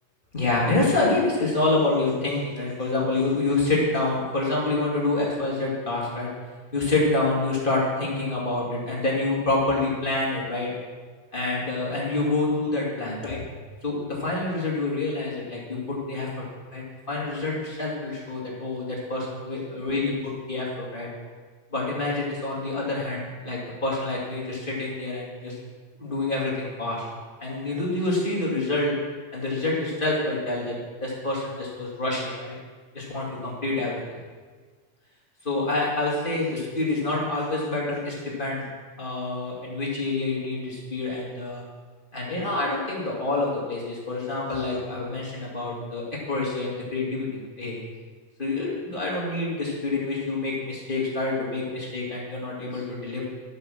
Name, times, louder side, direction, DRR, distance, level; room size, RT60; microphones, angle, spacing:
voice 1, 0.3-6.3 6.7-10.7 11.3-13.4 13.8-16.3 16.7-21.1 21.7-25.6 26.0-27.1 27.4-28.9 29.3-32.6 32.9-34.0 35.4-38.7 39.0-41.6 42.1-47.3 47.6-47.9 48.4-53.2, left 2 dB, 25° left, -5 dB, 1.1 m, -27 dB
12.0 x 6.6 x 6.4 m, 1.5 s
omnidirectional pair, 4.5 m